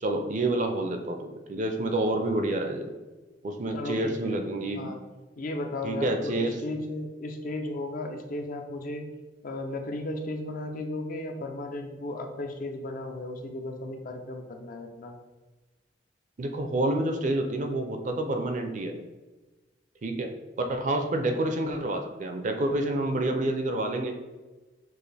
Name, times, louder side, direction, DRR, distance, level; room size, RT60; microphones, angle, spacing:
voice 1, 0.0-2.9 3.4-4.9 5.8-6.5 16.4-18.9 20.0-20.3 20.6-24.1, right 1 dB, 45° right, 5 dB, 0.5 m, -28 dB
voice 2, 3.7-5.0 5.4-9.0 9.4-15.2, left 2 dB, 50° left, 4 dB, 0.5 m, -35 dB
6.2 x 2.5 x 3.3 m, 1.2 s
head